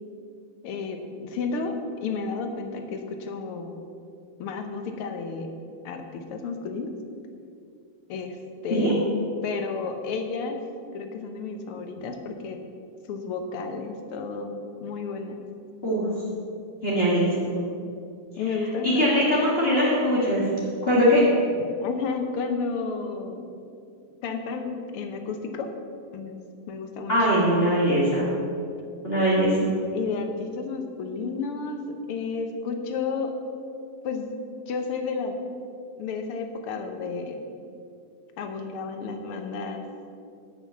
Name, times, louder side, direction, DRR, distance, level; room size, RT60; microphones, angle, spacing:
voice 1, 0.6-3.8 4.4-5.5 5.9-6.9 8.1-8.4 8.6-9.0 9.4-10.6 10.9-12.6 13.1-14.5 14.8-15.4 18.4-19.3 21.8-23.5 24.2-25.7 26.1-26.4 26.7-27.1 29.9-33.3 34.0-34.3 34.7-35.4 36.0-37.5 38.4-39.8, left 4 dB, 90° left, 5 dB, 1.9 m, -32 dB
voice 2, 16.8-17.3 18.8-20.4 20.8-21.2 27.1-28.2 29.0-29.7, equal, 30° left, -7 dB, 2.1 m, -21 dB
7.9 x 7.3 x 7.1 m, 2.5 s
omnidirectional pair, 2.4 m